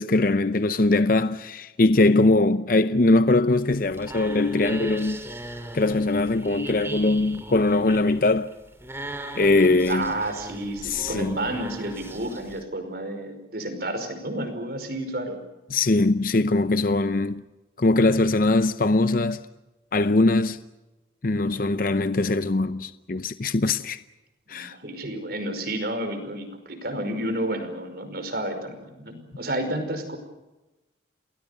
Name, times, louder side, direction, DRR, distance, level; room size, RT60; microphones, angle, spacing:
voice 1, 0.0-5.2 5.7-8.5 9.4-10.1 10.8-11.4 15.7-17.4 17.8-19.4 19.9-20.6 21.2-24.0 24.5-24.8, left 2 dB, 45° left, 0.7 m, -21 dB
sound 1, 3.5-12.6, right 1 dB, 15° right, 2.5 m, -38 dB
voice 2, 9.9-15.4 24.5-30.2, right 1 dB, 55° right, 5.2 m, -31 dB
29.5 x 20.5 x 6.8 m
head